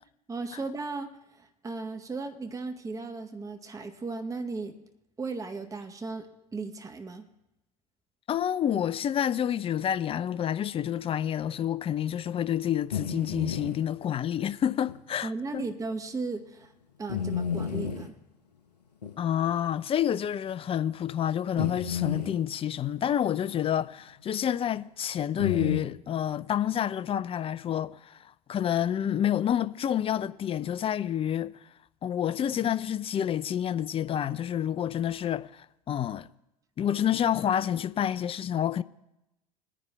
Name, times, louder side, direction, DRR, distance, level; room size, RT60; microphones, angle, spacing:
voice 1, 0.3-4.8 5.2-6.3 6.5-7.3 15.2-16.7 17.0-18.1, right 3 dB, 15° right, 0.8 m, -36 dB
voice 2, 8.3-15.6 19.2-31.5 32.0-36.3 36.8-38.8, left 10 dB, 30° left, 0.4 m, -28 dB
sound 1, 12.9-13.8 14.9-15.0 15.6-15.7 17.1-18.1 19.0-19.1 20.2-20.3 21.6-22.4 25.4-25.8, left 7 dB, 90° left, 0.9 m, -31 dB
21.5 x 9.9 x 2.3 m
figure-of-eight pair, 70°, 20 cm